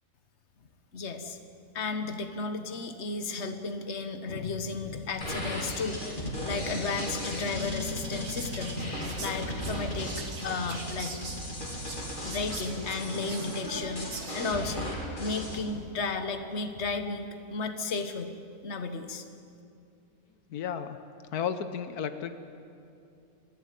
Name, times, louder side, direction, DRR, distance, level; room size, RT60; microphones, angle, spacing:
voice 1, 0.9-1.4 1.7-8.8 9.2-10.1 10.4-11.3 12.2-14.9 15.2-18.3 18.6-19.2, left 4 dB, 50° left, 8 dB, 1.6 m, -34 dB
sound 1, 5.2-15.6, left 1 dB, 35° left, 3.0 m, -36 dB
Whispering, 7.1-14.6, right 4 dB, 65° right, 2.1 m, -44 dB
voice 2, 20.5-21.0 21.3-22.3, left 8 dB, 85° left, 10 dB, 1.5 m, -33 dB
28.0 x 12.0 x 9.5 m, 2.6 s
omnidirectional pair, 1.6 m